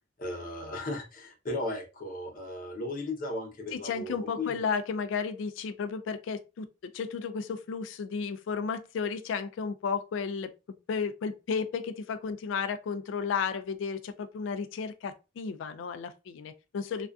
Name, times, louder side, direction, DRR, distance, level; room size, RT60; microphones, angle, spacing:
voice 1, 0.2-4.6, left 2 dB, 45° left, 0.7 m, -36 dB
voice 2, 3.7-6.7 6.9-10.5 10.9-17.1, left 5 dB, 75° left, 0.3 m, -33 dB
2.4 x 2.4 x 2.3 m
head